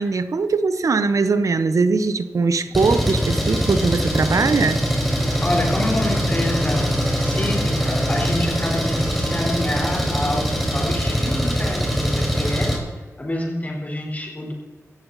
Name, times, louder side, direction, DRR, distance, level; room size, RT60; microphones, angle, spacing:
voice 1, 0.0-4.8, right 4 dB, 80° right, 11 dB, 0.8 m, -20 dB
Engine, 2.7-12.8, equal, ahead, 4.3 m, -22 dB
voice 2, 5.4-12.7 13.2-14.5, left 1 dB, 30° left, 0 dB, 4.1 m, -27 dB
17.0 x 14.5 x 4.1 m, 1.3 s
wide cardioid pair, 95°, 6 cm